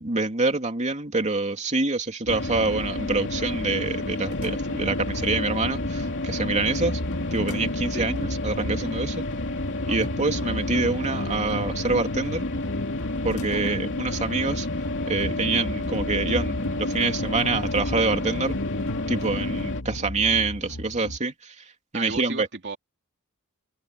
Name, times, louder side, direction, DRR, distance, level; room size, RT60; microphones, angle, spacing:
voice 1, 0.0-7.0 7.3-9.2 9.9-12.5 13.2-14.7 15.1-18.6 19.1-21.5 21.9-22.5, right 3 dB, 30° right, 3.0 m, -26 dB
sound 1, 2.3-19.8, left 2 dB, 55° left, 3.0 m, -30 dB
sound 2, 4.3-21.2, left 1 dB, 80° left, 1.9 m, -36 dB
voice 2, 21.9-22.8, right 4 dB, 55° right, 2.7 m, -35 dB
head